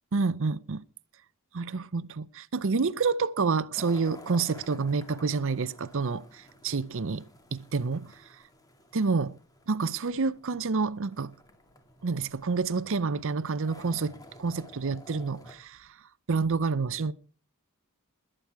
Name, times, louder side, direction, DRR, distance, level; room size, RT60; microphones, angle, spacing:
voice 1, 0.1-0.8 1.5-7.2 7.5-8.4 8.9-9.3 9.7-11.3 12.0-16.0 16.3-17.1, right 4 dB, 60° right, 0.6 m, -28 dB
sound 1, 3.7-15.5, left 1 dB, 15° left, 2.2 m, -52 dB
21.0 x 8.9 x 4.7 m
head